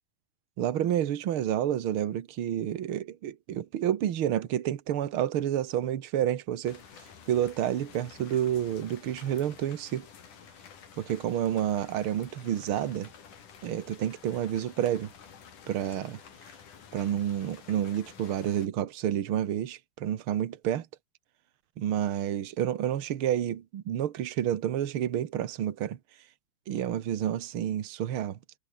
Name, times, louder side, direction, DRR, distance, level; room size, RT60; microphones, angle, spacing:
voice 1, 0.6-6.8 7.3-10.1 11.0-13.1 13.6-15.1 15.7-16.2 16.9-20.9 21.8-26.0 26.7-28.4, right 10 dB, 80° right, 1.2 m, -29 dB
sound 1, 6.6-18.7, left 7 dB, 55° left, 4.4 m, -51 dB
omnidirectional pair, 4.4 m